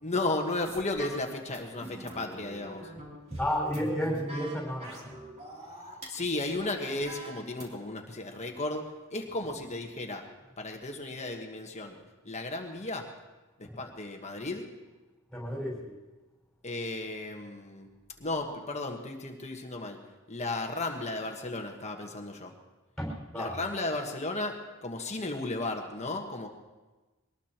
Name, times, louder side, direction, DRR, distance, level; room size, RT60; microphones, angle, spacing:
voice 1, 0.0-2.9 6.1-10.3 10.6-12.0 12.2-13.1 13.6-14.7 16.6-17.9 18.2-20.0 20.3-22.5 23.3-26.5, left 2 dB, 30° left, 2 dB, 1.4 m, -34 dB
sound 1, 0.6-6.1 6.5-7.7, right 1 dB, 30° right, 3.2 m, -44 dB
voice 2, 3.4-5.1 13.6-13.7 15.3-15.9 23.0-23.5, equal, 5° left, -3 dB, 5.7 m, -32 dB
23.0 x 19.5 x 3.0 m, 1.2 s
head